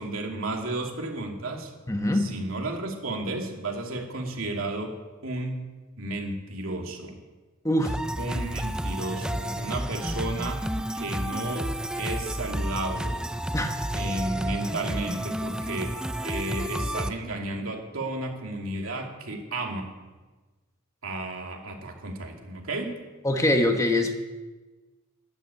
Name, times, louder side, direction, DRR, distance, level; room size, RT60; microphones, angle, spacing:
voice 1, 0.0-1.7 2.2-4.9 5.2-5.6 6.0-7.1 8.2-10.6 10.9-13.2 13.9-19.9 21.0-22.9, right 2 dB, 75° right, 1 dB, 2.7 m, -33 dB
voice 2, 1.9-2.3 7.6-8.0 13.5-13.7 23.2-24.1, left 1 dB, 15° left, 4 dB, 1.2 m, -23 dB
sound 1, 7.8-17.1, right 1 dB, 5° right, 0.4 m, -31 dB
12.0 x 12.0 x 8.6 m, 1.2 s
head